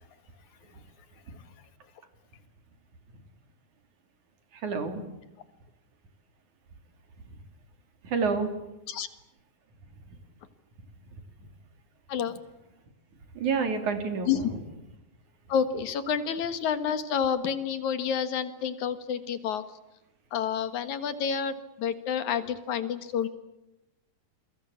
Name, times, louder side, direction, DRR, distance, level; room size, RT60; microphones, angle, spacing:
voice 1, 4.6-5.0 8.1-8.5 13.4-14.6, right 5 dB, 75° right, 7 dB, 4.6 m, -28 dB
voice 2, 15.5-19.6 20.3-21.5 21.8-23.3, left 7 dB, 75° left, 11 dB, 3.1 m, -29 dB
28.0 x 22.5 x 8.7 m, 0.93 s
omnidirectional pair, 3.4 m